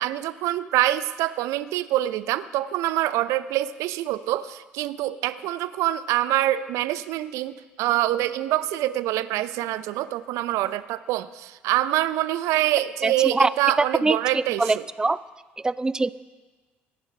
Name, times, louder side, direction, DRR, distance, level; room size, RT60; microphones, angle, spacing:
voice 1, 0.0-14.8, right 14 dB, 65° right, 15 dB, 0.5 m, -25 dB
voice 2, 13.0-13.5 14.0-15.2 15.6-16.1, right 3 dB, 15° right, 17 dB, 0.4 m, -23 dB
24.0 x 12.0 x 3.3 m, 1.3 s
hypercardioid pair, 50°, 6 cm